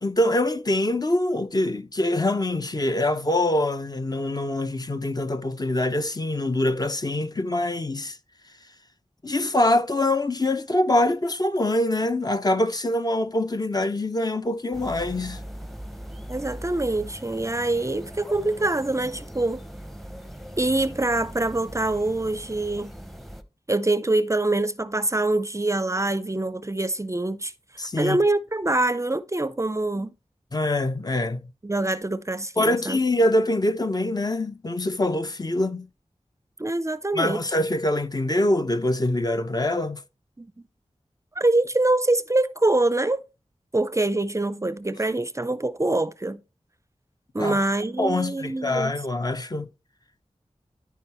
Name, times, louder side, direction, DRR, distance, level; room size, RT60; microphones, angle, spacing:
voice 1, 0.0-8.2 9.2-15.4 27.8-28.2 30.5-31.4 32.6-35.9 37.1-40.0 47.4-47.6 48.0-49.7, left 1 dB, 35° left, 0.7 m, -24 dB
sound 1, 14.7-23.4, equal, ahead, 0.9 m, -40 dB
voice 2, 16.3-19.6 20.6-22.9 23.7-27.5 27.8-30.1 31.6-33.0 36.6-37.4 40.4-40.5 41.4-43.2 43.7-46.4 47.3-48.9, right 2 dB, 25° right, 0.5 m, -24 dB
13.0 x 4.7 x 3.0 m
wide cardioid pair, 55°, 12 cm